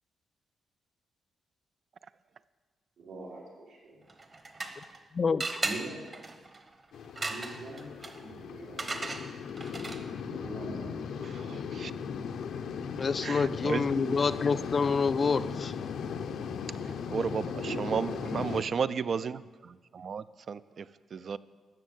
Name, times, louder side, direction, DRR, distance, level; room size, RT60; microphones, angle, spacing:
voice 1, 3.0-4.0 5.6-6.0 7.3-7.9 8.2-9.0 10.0-11.3 17.6-18.7, right 2 dB, 90° right, -5 dB, 5.0 m, -42 dB
sound 1, 4.1-5.0 5.4-10.2, right 3 dB, 30° right, 1.0 m, -38 dB
voice 2, 5.1-5.6 13.0-15.7, left 5 dB, 35° left, 13 dB, 0.3 m, -27 dB
sound 2, 6.9-18.6, left 6 dB, 80° left, 0.7 m, -37 dB
voice 3, 11.2-11.9 13.2-14.2 16.8-21.4, right 6 dB, 45° right, 15 dB, 0.4 m, -34 dB
13.0 x 6.5 x 9.2 m, 1.4 s
wide cardioid pair, 150°, 0 cm